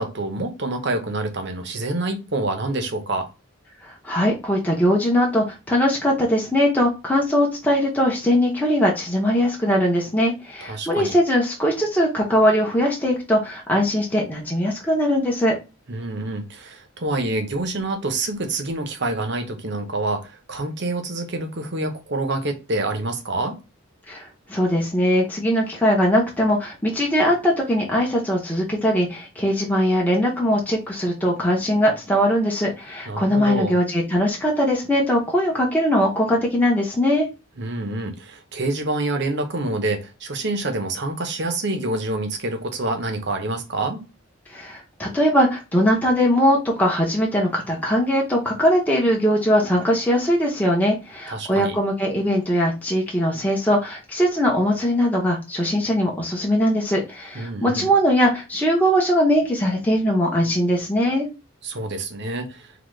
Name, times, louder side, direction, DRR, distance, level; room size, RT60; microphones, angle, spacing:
voice 1, 0.0-3.3 10.6-11.1 15.9-23.6 33.1-33.8 37.6-44.0 51.3-51.8 57.3-57.9 61.6-62.7, right 2 dB, 55° right, 6 dB, 0.8 m, -27 dB
voice 2, 3.8-15.6 24.1-37.3 44.5-61.3, equal, 10° left, -2 dB, 0.8 m, -20 dB
3.9 x 2.8 x 3.2 m, 0.28 s
head